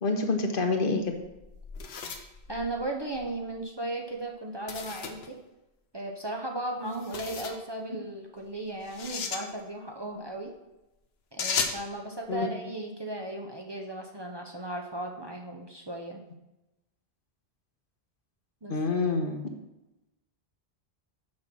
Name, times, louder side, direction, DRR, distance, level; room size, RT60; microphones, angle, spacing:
voice 1, 0.0-1.2 12.3-12.5 18.7-19.5, left 3 dB, 60° left, 4 dB, 1.1 m, -27 dB
sound 1, 1.0-3.3 4.7-5.3 6.9-7.6 8.8-9.4 11.4-11.8, left 5 dB, 80° left, 1.1 m, -34 dB
voice 2, 2.5-5.4 5.9-10.5 11.3-16.2 18.6-18.7, right 1 dB, 30° right, 0 dB, 0.7 m, -36 dB
6.4 x 5.6 x 6.1 m, 0.97 s
omnidirectional pair, 1.0 m